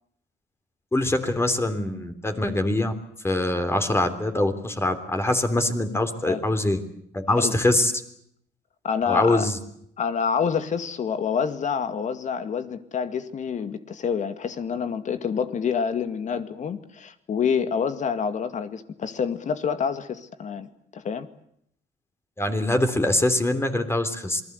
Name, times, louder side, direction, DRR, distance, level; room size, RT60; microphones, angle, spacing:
voice 1, 0.9-2.9 3.2-6.8 7.1-7.9 9.1-9.6 22.4-24.4, left 1 dB, 15° left, 7 dB, 3.3 m, -23 dB
voice 2, 8.8-9.4 10.0-21.3, left 6 dB, 45° left, 10 dB, 2.1 m, -27 dB
28.0 x 20.5 x 8.1 m, 0.73 s
cardioid pair, 110°, 17 cm